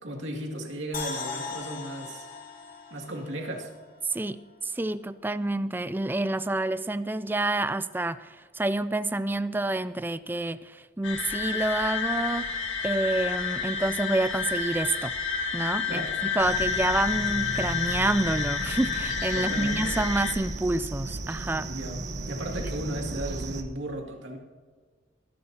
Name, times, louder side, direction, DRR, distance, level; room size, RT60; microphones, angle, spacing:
voice 1, 0.0-2.3 2.9-3.7 15.8-16.2 19.3-20.0 21.6-24.4, right 1 dB, 75° right, 0 dB, 2.3 m, -35 dB
sound 1, 0.9-4.1 4.5-4.6, left 4 dB, 50° left, 2.4 m, -38 dB
voice 2, 4.1-12.5 12.8-15.1 15.5-16.0 16.4-21.7, right 2 dB, 10° right, 14 dB, 0.3 m, -28 dB
sound 2, 11.0-20.3, left 6 dB, 85° left, 2.4 m, -30 dB
sound 3, 16.4-23.6, right 2 dB, 60° right, 1.1 m, -35 dB
23.0 x 11.5 x 2.8 m, 1.5 s
head